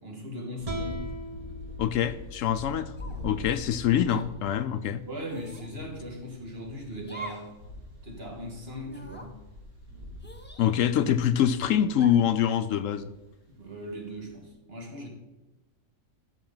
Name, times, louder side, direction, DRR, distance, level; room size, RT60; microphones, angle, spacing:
voice 1, 0.0-1.1 3.2-3.5 5.1-7.5 8.0-9.4 13.5-15.1, equal, 45° right, 1 dB, 2.0 m, -39 dB
sound 1, 0.6-3.8, right 1 dB, 30° right, 1.0 m, -41 dB
sound 2, 0.6-14.5, left 2 dB, 85° right, 2.9 m, -44 dB
voice 2, 1.8-2.9 3.2-5.0 10.6-13.1, left 9 dB, 70° left, 11 dB, 0.9 m, -25 dB
sound 3, 3.0-3.4 4.1-4.2 5.3-5.7 7.0-7.5 7.9-8.0 8.8-9.3 10.2-11.1 12.0-12.4, right 1 dB, 10° left, 0.8 m, -44 dB
13.0 x 6.5 x 3.9 m, 1.1 s
omnidirectional pair, 1.5 m